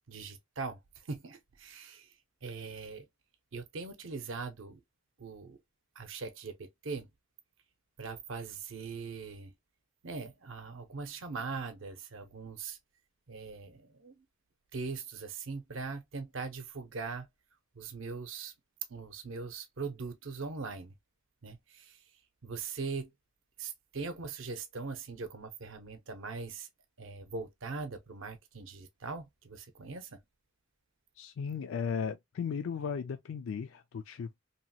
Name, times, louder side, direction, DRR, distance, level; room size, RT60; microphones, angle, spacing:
voice 1, 0.1-0.8 1.1-2.1 2.4-3.1 3.5-4.8 5.2-5.6 6.0-7.1 8.0-9.5 10.0-12.8 13.3-14.2 14.7-17.3 17.8-18.5 18.9-20.9 21.4-22.0 22.4-23.1 23.6-26.7 27.0-30.2, right 4 dB, 70° right, 0.6 m, -41 dB
voice 2, 31.2-34.4, left 6 dB, 75° left, 0.3 m, -36 dB
2.9 x 2.3 x 2.7 m
head